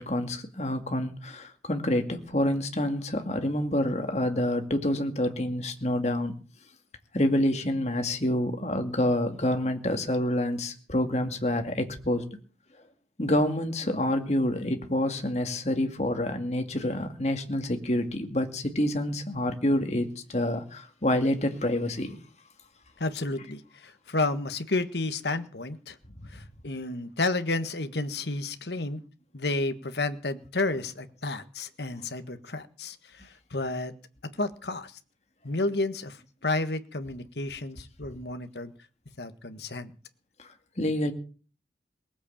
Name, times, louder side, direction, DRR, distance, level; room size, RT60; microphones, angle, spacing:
voice 1, 0.0-6.3 7.1-12.2 13.2-22.2 40.4-40.5 40.8-41.1, left 1 dB, 40° left, 2.3 m, -27 dB
voice 2, 23.0-26.0 26.3-29.0 29.3-33.9 34.4-35.0 35.4-38.7 39.2-39.9, left 2 dB, 75° left, 1.6 m, -31 dB
19.5 x 8.2 x 8.6 m
head